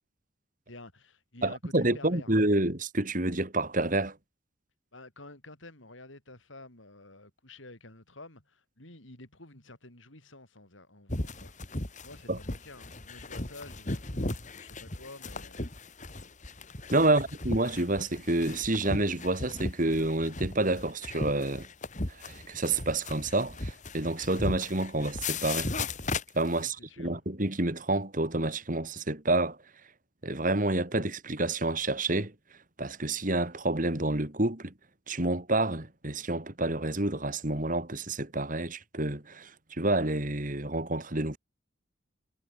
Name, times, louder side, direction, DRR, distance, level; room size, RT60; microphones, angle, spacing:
voice 1, 0.7-2.3 4.9-11.5 12.0-15.7 17.1-17.2 26.6-27.2, left 2 dB, 75° left, 6.4 m, -50 dB
voice 2, 1.4-4.2 12.3-12.4 16.9-21.7 22.1-25.7 26.3-29.6 30.2-32.3 32.8-34.7 35.1-41.4, right 2 dB, 40° right, 2.7 m, -28 dB
sound 1, 11.1-26.6, left 2 dB, 40° left, 2.4 m, -36 dB
head